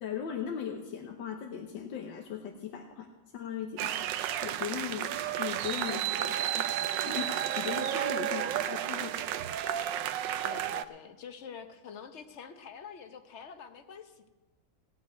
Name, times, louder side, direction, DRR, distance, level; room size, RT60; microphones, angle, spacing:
voice 1, 0.0-3.1 3.3-9.1, left 8 dB, 85° left, 3 dB, 1.7 m, -38 dB
sound 1, 3.8-10.8, right 11 dB, 80° right, 1.3 m, -32 dB
voice 2, 8.3-8.7 10.4-14.3, left 6 dB, 50° left, 8 dB, 1.0 m, -46 dB
17.0 x 6.3 x 9.4 m, 1.2 s
omnidirectional pair, 2.0 m